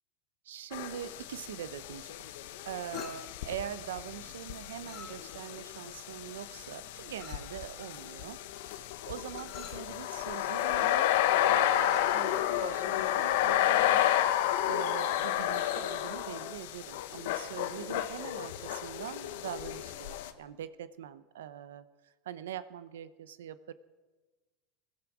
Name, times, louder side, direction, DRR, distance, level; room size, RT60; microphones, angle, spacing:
voice 1, 0.4-2.3 2.6-8.4 8.7-11.1 11.4-14.0 14.6-23.7, right 10 dB, 90° right, 15 dB, 0.7 m, -43 dB
sound 1, 0.7-20.3, left 12 dB, 75° left, 0.9 m, -31 dB
Chink clink, 2.9-3.5 4.8-5.5 7.2-7.6 9.3-9.9 11.8-12.1, left 6 dB, 45° left, 2.9 m, -50 dB
20.0 x 12.5 x 4.9 m, 1.3 s
supercardioid pair, 105°, 0 cm